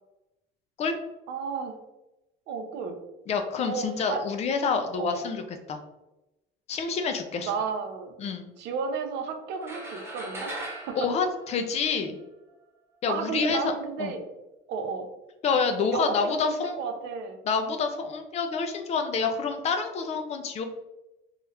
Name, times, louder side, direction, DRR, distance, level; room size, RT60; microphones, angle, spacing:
voice 1, 1.3-1.8 2.5-3.0 3.7-4.2 5.0-5.2 7.4-8.1 8.6-10.6 10.8-11.1 13.1-14.2 14.7-15.1 15.9-17.4, right 5 dB, 70° right, 6 dB, 0.5 m, -32 dB
voice 2, 3.3-5.4 5.7-5.8 6.7-7.5 8.2-8.5 11.0-12.2 13.0-13.7 14.0-14.2 15.4-16.8 17.5-20.6, left 5 dB, 35° left, 6 dB, 0.4 m, -27 dB
sound 1, 9.6-12.2, right 1 dB, 15° right, 0.7 m, -39 dB
2.9 x 2.3 x 3.1 m, 0.96 s
cardioid pair, 150°, 18 cm